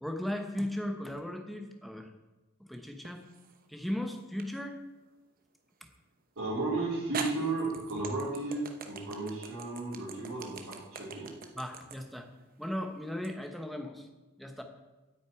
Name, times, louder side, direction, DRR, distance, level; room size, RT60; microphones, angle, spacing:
voice 1, 0.0-2.1 2.7-3.2 3.7-4.8 11.5-12.3 12.6-14.1 14.4-14.6, left 1 dB, ahead, 5 dB, 1.0 m, -37 dB
sound 1, 3.0-3.6 4.4-4.5 6.4-6.5 7.1-13.3, right 5 dB, 40° right, 0.9 m, -42 dB
voice 2, 6.4-11.3, right 2 dB, 60° right, -11 dB, 4.2 m, -34 dB
9.3 x 6.6 x 8.7 m, 1.1 s
head